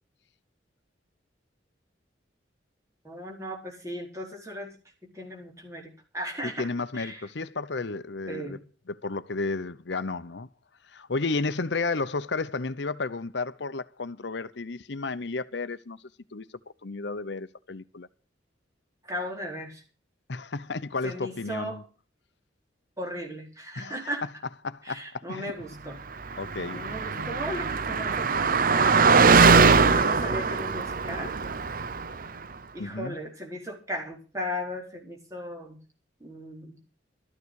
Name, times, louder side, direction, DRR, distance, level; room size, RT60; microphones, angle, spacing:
voice 1, 3.0-4.8 5.1-6.7 6.9-7.2 8.3-8.6 19.0-19.8 21.0-21.8 23.0-24.2 24.8-26.0 26.7-29.1 29.5-31.3 32.7-35.8 36.2-36.8, equal, 15° right, 4.3 m, -36 dB
voice 2, 6.4-8.6 8.9-10.5 10.8-16.0 16.3-16.4 16.8-18.1 20.3-21.8 23.8-24.1 24.6-25.5 26.4-26.9 27.1-27.3 32.8-33.2, left 3 dB, 65° left, 0.8 m, -32 dB
Car passing by, 26.3-32.2, right 4 dB, 45° right, 0.7 m, -21 dB
13.5 x 9.8 x 6.3 m
head